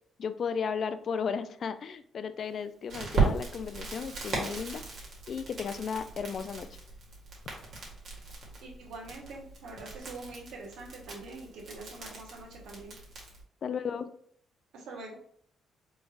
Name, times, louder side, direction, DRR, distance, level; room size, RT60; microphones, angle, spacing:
voice 1, 0.2-4.8 5.3-6.7 13.6-14.1, left 6 dB, 55° left, 11 dB, 0.3 m, -34 dB
Crackle, 2.9-13.4, right 4 dB, 65° right, 1.4 m, -36 dB
voice 2, 8.6-13.0 14.7-15.2, right 3 dB, 80° right, 0 dB, 1.1 m, -44 dB
4.2 x 3.3 x 2.3 m, 0.63 s
cardioid pair, 90°, 0 cm